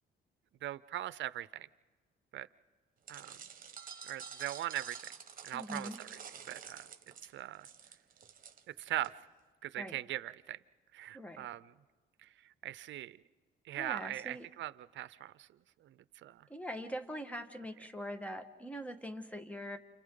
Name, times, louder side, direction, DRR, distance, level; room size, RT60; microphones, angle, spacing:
voice 1, 0.6-1.7 2.3-2.5 3.1-3.4 4.0-5.0 5.4-6.2 6.5-6.9 7.3-7.7 8.8-9.2 9.6-10.6 10.9-11.7 12.2-12.3 12.6-13.2 13.7-15.5 15.8-15.9 16.2-16.5, right 13 dB, 70° right, 16 dB, 0.6 m, -40 dB
sound 1, 3.1-9.1, right 7 dB, 45° right, 1.5 m, -49 dB
voice 2, 5.5-6.0 9.8-10.0 11.1-11.5 13.8-14.5 16.5-19.8, equal, 5° left, 8 dB, 1.5 m, -42 dB
30.0 x 28.5 x 3.8 m, 1.4 s
cardioid pair, 90°, 20 cm